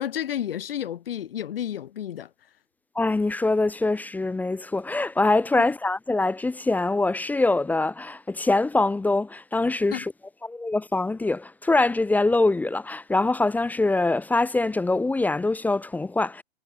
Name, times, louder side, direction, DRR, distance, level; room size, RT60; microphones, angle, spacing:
voice 1, 0.0-2.5 9.9-10.0, left 10 dB, 60° left, 4.6 m, -31 dB
voice 2, 2.9-10.1 10.4-16.4, left 2 dB, 5° left, 0.8 m, -24 dB
figure-of-eight pair, 110°, 32 cm